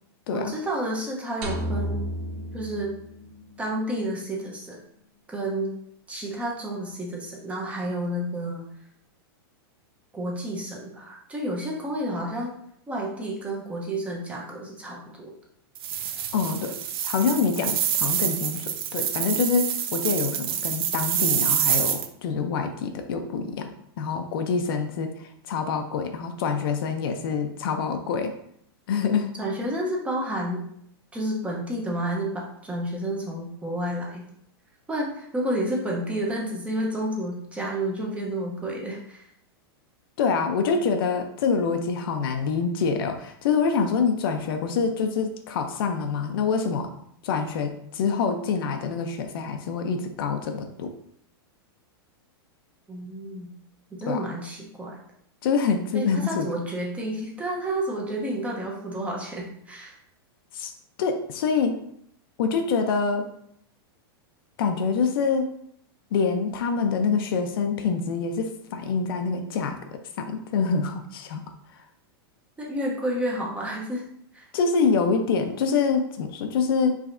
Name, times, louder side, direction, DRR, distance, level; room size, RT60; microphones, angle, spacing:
voice 1, 0.3-2.1 2.5-2.9 3.6-4.8 5.3-5.7 6.1-8.7 10.1-12.5 12.9-15.3 29.4-30.6 31.1-34.2 34.9-39.2 52.9-53.5 53.9-55.0 55.9-60.0 72.6-74.0 74.3-74.5, right 1 dB, 10° right, -2 dB, 0.8 m, -30 dB
sound 1, 1.4-3.7, equal, 45° right, 0.9 m, -32 dB
sound 2, 15.7-22.1, right 9 dB, 70° right, 0.5 m, -27 dB
voice 2, 16.3-16.7 17.0-23.7 24.0-28.3 28.9-29.3 40.2-46.9 47.2-50.9 54.1-54.2 55.4-56.5 60.5-60.7 61.0-61.8 62.4-63.3 64.6-65.5 66.1-69.8 70.2-71.4 74.5-76.9, left 5 dB, 65° left, 6 dB, 0.6 m, -26 dB
4.8 x 3.3 x 2.6 m, 0.70 s
supercardioid pair, 150°, 13 cm